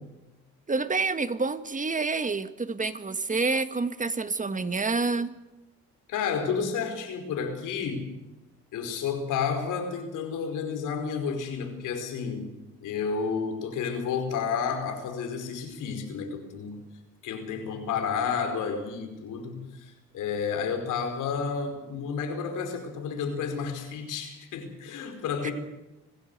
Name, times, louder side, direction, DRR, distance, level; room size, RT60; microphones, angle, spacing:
voice 1, 0.7-5.3 25.4-25.5, right 4 dB, 25° right, 11 dB, 1.6 m, -28 dB
voice 2, 6.1-8.1 8.7-16.9 17.2-25.5, left 6 dB, 85° left, 5 dB, 4.9 m, -31 dB
25.5 x 16.0 x 8.1 m, 1.0 s
cardioid pair, 90°, 30 cm